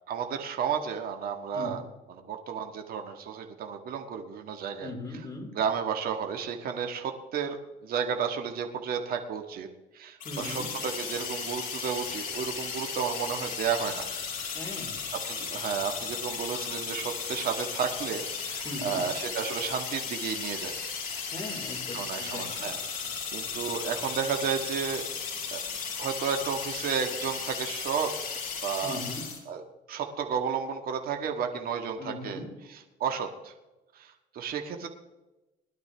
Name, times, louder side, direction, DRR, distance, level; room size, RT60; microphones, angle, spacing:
voice 1, 0.1-1.8 2.1-4.9 5.6-7.6 7.8-9.7 9.9-14.1 15.3-20.7 21.9-23.0 23.3-25.6 26.0-29.0 29.5-29.6 29.9-32.4 32.7-33.5 33.9-34.9, right 7 dB, 60° right, 4 dB, 1.6 m, -32 dB
voice 2, 4.8-5.5 10.2-10.7 14.5-14.9 18.6-19.0 21.3-22.7 28.8-29.2 32.0-32.5, left 2 dB, 20° left, 0 dB, 4.2 m, -39 dB
sound 1, 10.2-29.4, left 6 dB, 55° left, 5.4 m, -35 dB
20.0 x 11.5 x 3.4 m, 1.0 s
cardioid pair, 110°, 17 cm